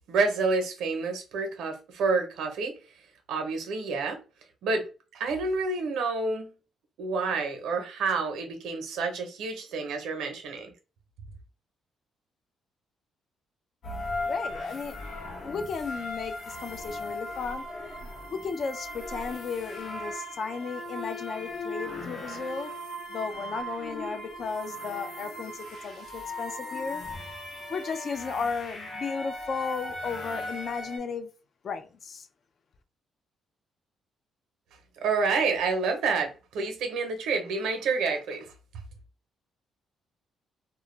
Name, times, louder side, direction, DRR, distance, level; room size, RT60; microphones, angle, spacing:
voice 1, 0.1-2.7 3.3-4.2 4.6-4.9 5.1-6.5 7.0-10.7 35.0-38.5, right 4 dB, 85° right, 0.7 m, -28 dB
sound 1, 13.8-31.0, left 1 dB, 70° left, 0.9 m, -38 dB
voice 2, 14.3-14.9 15.4-17.6 18.3-22.7 23.1-27.0 27.7-31.3 31.6-32.3, left 5 dB, 55° left, 0.4 m, -34 dB
2.2 x 2.0 x 3.1 m
cardioid pair, 90°, 0 cm